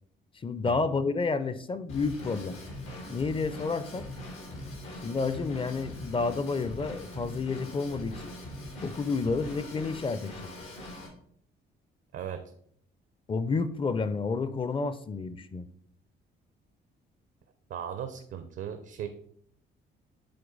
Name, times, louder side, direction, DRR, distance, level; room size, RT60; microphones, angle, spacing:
voice 1, 0.3-2.6 3.1-4.1 5.0-8.4 8.8-10.5 13.3-15.7, left 4 dB, 25° left, 13 dB, 0.5 m, -30 dB
Drum kit / Drum, 1.9-11.1, left 1 dB, 85° left, 2.1 m, -42 dB
voice 2, 12.1-12.4 17.7-19.1, right 9 dB, 70° right, 9 dB, 0.6 m, -37 dB
7.8 x 3.4 x 3.9 m, 0.66 s
cardioid pair, 90°, 20 cm